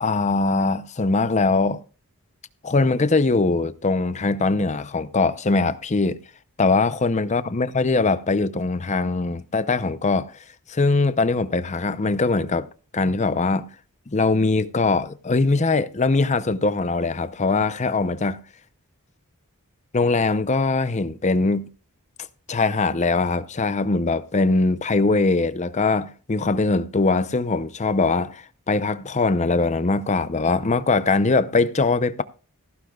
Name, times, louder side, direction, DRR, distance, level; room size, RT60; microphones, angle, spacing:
voice 1, 0.0-1.8 2.6-6.2 6.6-10.3 10.7-12.7 12.9-13.6 14.1-18.4 19.9-21.7 22.5-32.2, left 3 dB, 30° left, 0.6 m, -21 dB
15.5 x 14.5 x 2.3 m
head